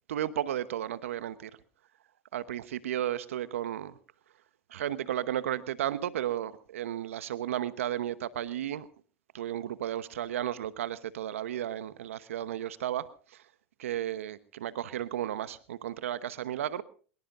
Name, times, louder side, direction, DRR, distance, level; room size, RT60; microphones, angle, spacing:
voice 1, 0.0-1.5 2.3-4.0 4.7-8.9 9.3-13.4 13.8-16.8, right 11 dB, 85° right, 14 dB, 1.0 m, -34 dB
23.5 x 22.5 x 2.5 m, 0.41 s
hypercardioid pair, 90°, 7 cm